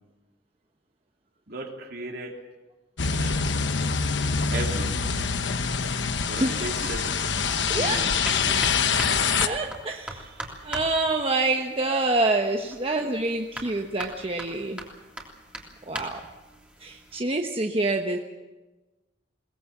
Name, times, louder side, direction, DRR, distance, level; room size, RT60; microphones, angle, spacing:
voice 1, 1.5-2.3 3.2-3.4 4.5-5.0 6.3-7.2 7.7-8.6 9.0-9.3, right 2 dB, 55° right, 2 dB, 3.1 m, -36 dB
sound 1, 3.0-9.5, left 5 dB, 75° left, 1.2 m, -25 dB
voice 2, 6.4-6.8 7.7-8.1 9.4-10.3 10.6-14.8 15.9-16.2 16.8-18.2, right 2 dB, 30° right, 3 dB, 1.1 m, -26 dB
sound 2, 7.4-17.2, right 1 dB, 5° right, 3.1 m, -40 dB
22.0 x 20.0 x 7.3 m, 1.2 s
head